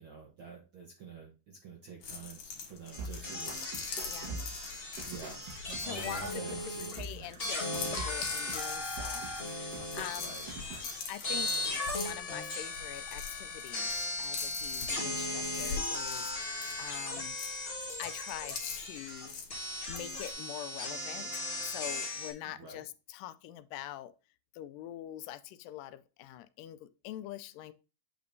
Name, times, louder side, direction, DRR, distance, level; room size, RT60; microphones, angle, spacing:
voice 1, 0.0-3.6 4.1-4.5 5.0-7.3 9.7-10.5 22.4-22.8, right 4 dB, 70° right, 1.2 m, -48 dB
sound 1, 2.0-20.3, left 6 dB, 70° left, 2.5 m, -44 dB
sound 2, 2.9-7.0 7.4-22.3, left 2 dB, 40° left, 0.8 m, -37 dB
sound 3, 3.0-11.0, right 3 dB, 85° right, 3.2 m, -45 dB
voice 2, 4.0-4.3 5.8-6.2 7.0-10.4 11.1-13.9 14.2-17.4 18.0-19.3 19.9-21.3 21.6-24.1 24.6-27.7, left 13 dB, 85° left, 2.2 m, -44 dB
8.7 x 5.1 x 2.7 m
omnidirectional pair, 3.8 m